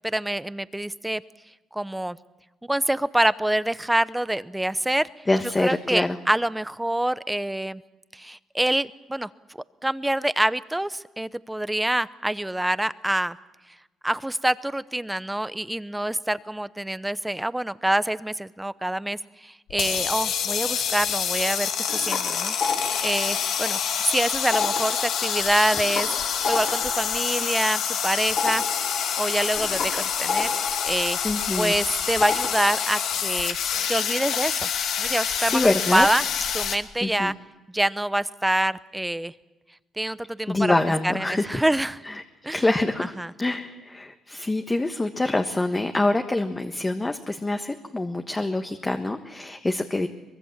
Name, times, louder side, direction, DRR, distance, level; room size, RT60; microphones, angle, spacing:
voice 1, 0.0-1.2 1.7-2.2 2.6-5.1 5.6-7.8 8.1-13.4 14.0-21.7 22.0-22.5 23.0-26.1 26.4-28.6 29.2-30.5 30.8-31.2 31.5-33.6 33.9-34.7 35.0-36.2 36.5-37.3 37.7-39.3 40.0-40.7 41.0-42.0 42.4-42.6 43.2-43.3, right 1 dB, 10° right, 16 dB, 0.8 m, -26 dB
voice 2, 5.3-6.2 31.2-31.7 35.4-36.1 37.0-37.3 40.5-41.6 42.1-42.2 42.5-43.1 43.4-50.1, left 2 dB, 20° left, 5 dB, 1.4 m, -25 dB
sound 1, 19.7-36.8, left 8 dB, 80° left, 2.3 m, -27 dB
sound 2, 21.6-24.1 24.4-31.9 32.2-33.0, left 4 dB, 55° left, 4.5 m, -32 dB
24.0 x 21.5 x 7.4 m, 1.1 s
cardioid pair, 90°, 0 cm